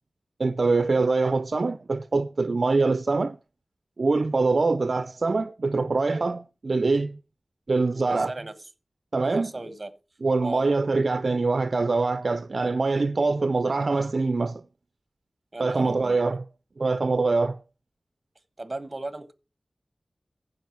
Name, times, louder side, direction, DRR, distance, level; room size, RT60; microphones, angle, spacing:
voice 1, 0.4-3.4 4.0-7.2 7.7-8.3 9.1-9.5 10.2-14.6 15.6-16.4 16.8-17.6, right 3 dB, 65° right, 0.4 m, -24 dB
voice 2, 7.9-8.5 9.3-9.9 10.4-10.7 15.5-16.2 18.6-19.3, right 2 dB, 35° right, 1.2 m, -36 dB
15.0 x 5.3 x 4.5 m
wide cardioid pair, 75°, 0 cm